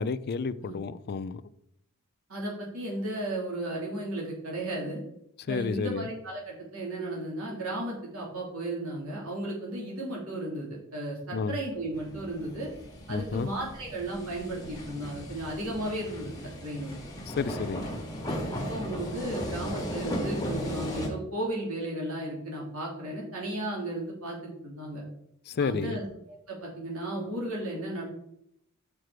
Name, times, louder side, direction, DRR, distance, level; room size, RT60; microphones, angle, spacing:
voice 1, 0.0-1.4 5.5-6.1 11.3-11.6 13.1-13.5 17.3-17.9 25.5-26.0, left 5 dB, 45° left, 0.4 m, -31 dB
voice 2, 2.3-5.0 5.5-12.7 13.1-16.3 16.6-16.9 18.2-25.0 25.6-26.1 26.5-28.0, right 1 dB, 70° right, 3.0 m, -34 dB
sound 1, 11.9-21.1, equal, 15° left, 1.7 m, -36 dB
6.6 x 6.1 x 4.8 m
head